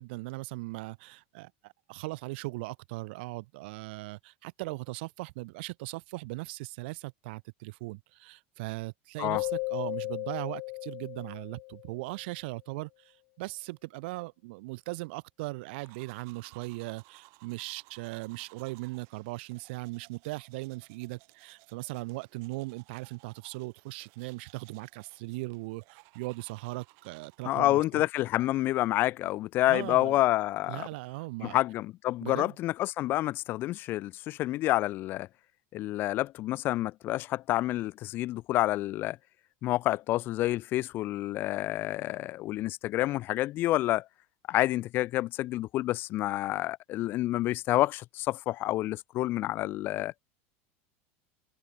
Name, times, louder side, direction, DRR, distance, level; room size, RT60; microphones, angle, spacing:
voice 1, 0.0-28.0 29.7-30.2 30.7-31.6 32.2-32.5, right 24 dB, 65° right, 0.9 m, -39 dB
Keyboard (musical), 9.3-12.1, left 31 dB, 50° left, 1.1 m, -36 dB
sound 1, 15.7-27.7, right 32 dB, 50° right, 5.7 m, -59 dB
voice 2, 27.5-30.9 31.4-35.3 35.7-39.2 39.6-44.1 44.5-50.1, left 16 dB, 35° left, 0.7 m, -28 dB
supercardioid pair, 170°, 6 cm